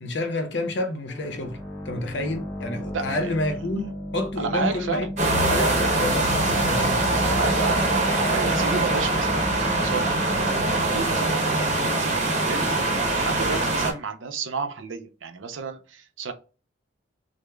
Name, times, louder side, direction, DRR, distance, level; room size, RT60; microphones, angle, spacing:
voice 1, 0.0-1.6 1.8-7.0, left 1 dB, 65° left, 0.7 m, -29 dB
sound 1, 1.1-12.5, equal, ahead, 0.6 m, -36 dB
voice 2, 2.9-3.3 4.4-5.1 7.2-16.3, right 5 dB, 80° right, 0.6 m, -32 dB
sound 2, 5.2-13.9, right 2 dB, 35° right, 0.8 m, -23 dB
4.9 x 2.0 x 2.2 m
head